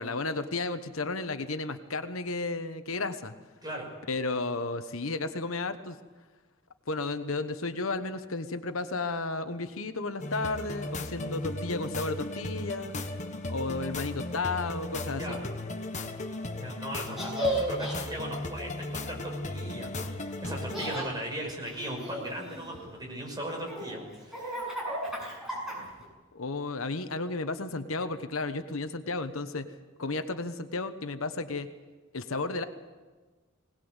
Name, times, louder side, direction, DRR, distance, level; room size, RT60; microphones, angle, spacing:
voice 1, 0.0-3.3 4.1-6.0 6.9-13.0 13.5-15.4 26.3-29.7 30.0-31.7 32.1-32.6, left 3 dB, 75° left, 9 dB, 1.2 m, -33 dB
sound 1, 10.2-20.9, left 2 dB, 35° left, 1.4 m, -36 dB
voice 2, 16.6-24.7, right 1 dB, 20° right, 0 dB, 5.9 m, -38 dB
Laughter, 17.1-18.0 20.5-21.1 21.7-22.9 23.5-26.1, right 1 dB, ahead, 7.0 m, -34 dB
21.0 x 19.0 x 8.2 m, 1.3 s
head